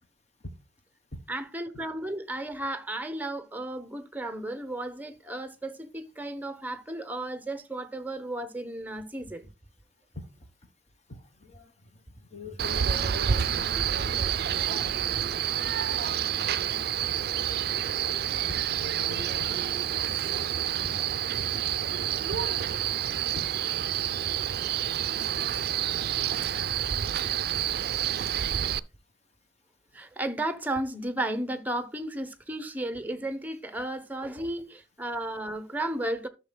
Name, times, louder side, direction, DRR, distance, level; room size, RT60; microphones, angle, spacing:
voice 1, 1.3-9.5 23.0-23.1 27.2-27.4 29.9-36.3, right 1 dB, 10° right, 0.8 m, -34 dB
voice 2, 11.1-11.7 12.3-18.2 18.5-18.6 18.9-21.0 22.3-22.4 23.3-23.4, left 1 dB, 40° left, 1.4 m, -43 dB
Male speech man speaking, 12.6-28.8, right 9 dB, 60° right, 0.4 m, -28 dB
12.0 x 6.5 x 2.2 m
head